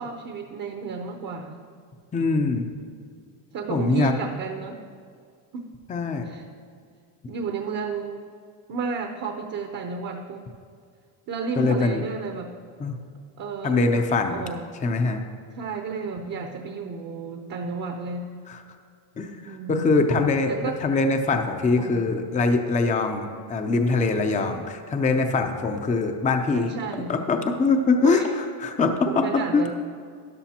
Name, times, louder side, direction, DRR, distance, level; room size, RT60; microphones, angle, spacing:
voice 1, 0.0-1.6 3.5-4.8 5.5-5.7 6.2-6.5 7.2-8.2 8.7-10.4 11.3-12.5 13.4-14.8 15.6-18.3 19.4-20.0 20.5-20.7 21.7-22.0 26.5-27.1 28.0-28.3 29.1-29.7, right 5 dB, 40° right, 4 dB, 0.8 m, -32 dB
voice 2, 2.1-2.7 3.7-4.1 5.9-6.3 11.6-12.0 12.8-13.0 13.6-14.4 14.8-15.2 18.5-18.6 19.2-26.7 27.1-29.7, left 3 dB, 15° left, 5 dB, 0.6 m, -23 dB
13.0 x 10.5 x 2.9 m, 2.1 s
cardioid pair, 130°, 49 cm